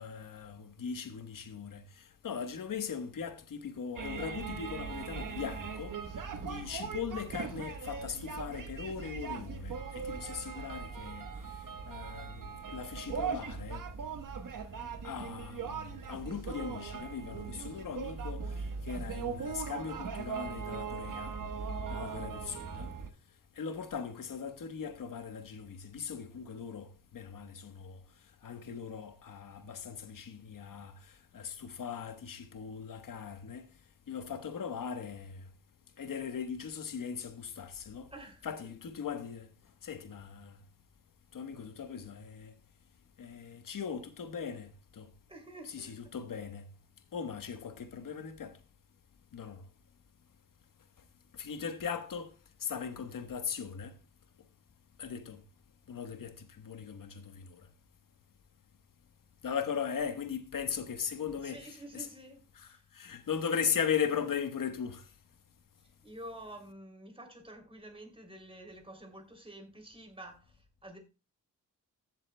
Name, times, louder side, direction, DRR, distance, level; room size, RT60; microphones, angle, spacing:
voice 1, 0.0-6.0 6.4-11.3 11.9-13.9 15.0-18.5 18.8-21.4 21.9-22.9 23.6-26.9 27.1-28.0 28.4-30.9 31.3-33.7 34.1-35.4 36.0-38.1 38.4-39.5 39.8-40.6 41.3-42.5 43.2-45.1 45.6-46.6 47.1-48.6 49.3-49.6 51.4-52.3 52.6-53.9 55.0-55.4 55.9-57.7 59.4-62.1 62.5-65.0, left 7 dB, 80° left, 1.2 m, -39 dB
sound 1, 4.0-23.1, right 5 dB, 75° right, 1.2 m, -40 dB
voice 2, 6.3-6.7 38.1-38.7 45.3-46.1 61.4-62.8 66.0-70.6 70.8-71.0, right 1 dB, 15° right, 3.0 m, -49 dB
15.5 x 7.4 x 2.2 m
cardioid pair, 70°, 33 cm